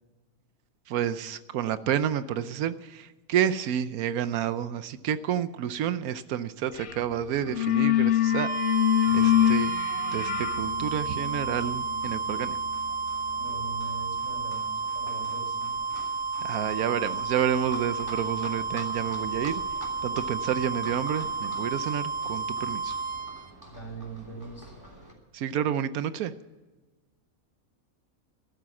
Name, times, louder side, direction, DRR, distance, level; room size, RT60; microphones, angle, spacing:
voice 1, 0.9-8.5 9.1-9.7 10.1-12.6 16.4-19.6 20.0-23.0 25.3-26.3, right 9 dB, 85° right, 13 dB, 1.1 m, -29 dB
sound 1, 6.8-7.0 7.3-13.9, left 12 dB, 60° left, 1.0 m, -26 dB
Livestock farm animals working animals, 7.0-25.1, right 1 dB, 15° right, 3.2 m, -48 dB
sound 2, 8.2-23.5, right 4 dB, 35° right, 1.3 m, -31 dB
voice 2, 13.3-15.8 23.7-24.7, right 3 dB, 20° left, 0 dB, 4.3 m, -42 dB
14.0 x 12.5 x 7.1 m, 1.2 s
omnidirectional pair, 1.5 m